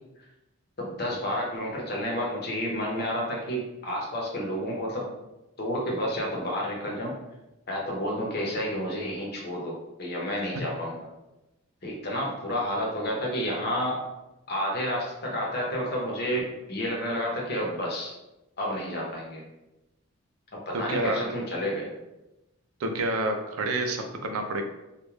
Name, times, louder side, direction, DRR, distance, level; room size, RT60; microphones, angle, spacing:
voice 1, 0.8-5.0 5.6-7.1 7.7-11.1 11.8-14.0 14.5-18.1 18.6-19.4 20.7-21.9, equal, 45° left, -3 dB, 0.7 m, -30 dB
voice 2, 20.7-21.3 22.8-24.6, right 1 dB, 80° right, 5 dB, 0.4 m, -28 dB
2.3 x 2.1 x 3.1 m, 0.95 s
head